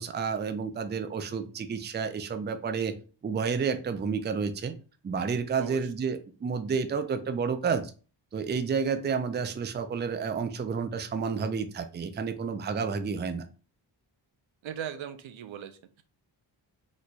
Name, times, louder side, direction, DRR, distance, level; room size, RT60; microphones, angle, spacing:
voice 1, 0.0-3.0 3.2-4.7 5.0-7.9 8.3-13.5, right 5 dB, 25° right, 9 dB, 0.3 m, -30 dB
voice 2, 14.6-16.0, right 9 dB, 85° right, 10 dB, 0.5 m, -39 dB
3.0 x 2.2 x 4.0 m, 0.36 s
wide cardioid pair, 85°, 45 cm